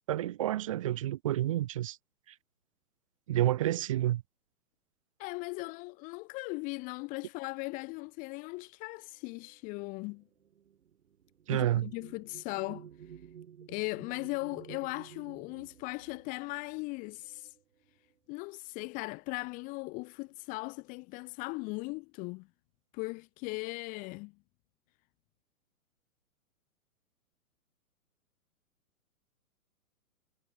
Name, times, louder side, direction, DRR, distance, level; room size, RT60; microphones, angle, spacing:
voice 1, 0.1-2.0 3.3-4.2 11.5-11.9, right 13 dB, 25° right, 0.5 m, -29 dB
voice 2, 5.2-10.2 11.5-12.9 13.7-17.5 18.3-22.5 22.9-24.3, left 26 dB, 20° left, 0.7 m, -38 dB
sound 1, 9.2-18.1 19.0-19.2 19.5-20.1, right 9 dB, 60° right, 3.8 m, -54 dB
figure-of-eight pair, 125°, 43 cm